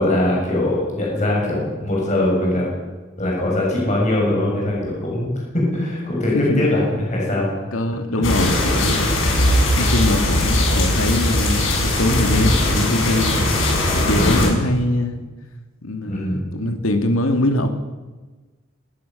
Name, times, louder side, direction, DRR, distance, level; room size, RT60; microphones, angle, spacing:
voice 1, 0.0-2.7 3.2-6.8 7.1-7.5 14.1-14.4 16.1-16.4, left 1 dB, 35° left, -3 dB, 7.9 m, -21 dB
voice 2, 7.7-9.1 9.8-13.4 14.1-15.3 15.8-17.7, left 1 dB, 90° left, 6 dB, 2.6 m, -22 dB
sound 1, 8.2-14.5, left 1 dB, 65° left, 7.2 m, -19 dB
20.0 x 20.0 x 7.0 m, 1.3 s
head